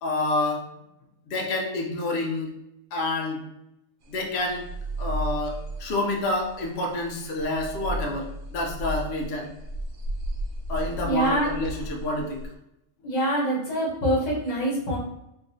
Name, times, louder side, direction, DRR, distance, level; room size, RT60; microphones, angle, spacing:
voice 1, 0.0-0.6 1.3-2.5 2.9-3.4 4.1-4.7 5.0-9.5 10.7-12.4, left 2 dB, 60° left, 0 dB, 0.8 m, -28 dB
sound 1, 4.2-12.5, equal, 85° right, 1.0 m, -34 dB
voice 2, 11.0-11.5 13.0-15.0, right 1 dB, 35° left, -5 dB, 1.1 m, -25 dB
3.1 x 2.7 x 2.6 m, 0.85 s
omnidirectional pair, 1.4 m